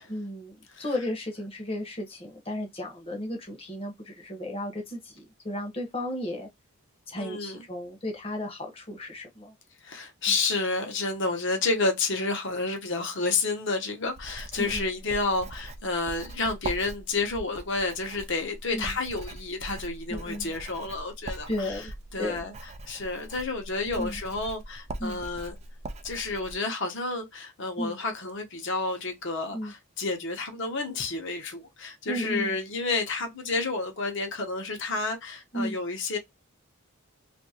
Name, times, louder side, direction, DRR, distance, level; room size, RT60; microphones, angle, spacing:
voice 1, 0.1-6.5 7.1-9.5 10.3-10.4 14.6-15.0 18.7-18.9 20.1-20.5 21.5-21.9 22.2-22.4 24.0-24.2 25.0-25.2 27.8-28.0 29.5-29.7 32.1-32.6 35.5-35.8, left 1 dB, 25° left, 0.8 m, -34 dB
voice 2, 7.2-7.6 9.8-22.5 22.9-25.5 26.0-36.2, left 3 dB, 55° left, 0.9 m, -30 dB
Writing, 14.1-26.5, right 2 dB, 30° right, 0.4 m, -41 dB
2.8 x 2.6 x 2.7 m
head